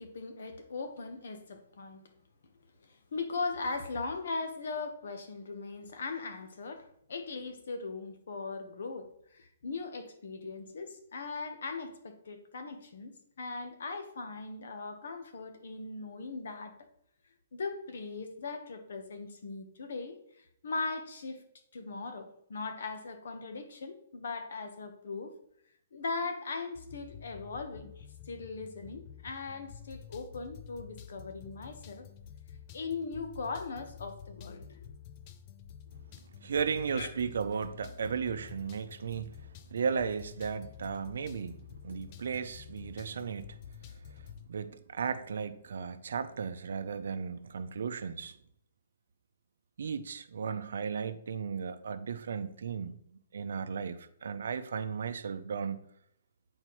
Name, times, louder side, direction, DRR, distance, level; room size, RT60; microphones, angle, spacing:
voice 1, 0.0-2.0 2.8-16.7 17.5-21.4 21.7-25.3 25.9-32.1 32.7-34.8 36.9-37.1, left 4 dB, 70° left, 1.1 m, -39 dB
sound 1, 26.7-44.5, left 8 dB, 25° left, 0.4 m, -50 dB
voice 2, 36.4-43.6 44.5-48.4 49.8-55.8, right 6 dB, 75° right, 0.6 m, -35 dB
9.1 x 4.3 x 3.1 m
hypercardioid pair, 170°, 0 cm